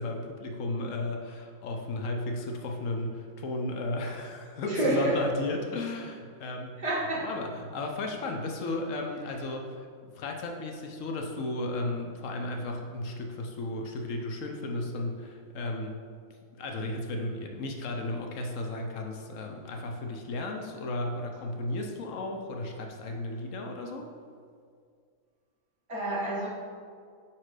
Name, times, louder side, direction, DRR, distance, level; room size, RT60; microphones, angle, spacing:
voice 1, 0.0-6.8 7.2-16.0 16.5-24.1, left 2 dB, 65° left, 2 dB, 0.9 m, -34 dB
voice 2, 4.6-5.1 6.8-7.3 25.9-26.5, right 2 dB, 50° right, -7 dB, 1.5 m, -28 dB
5.0 x 4.3 x 4.7 m, 2.1 s
omnidirectional pair, 1.6 m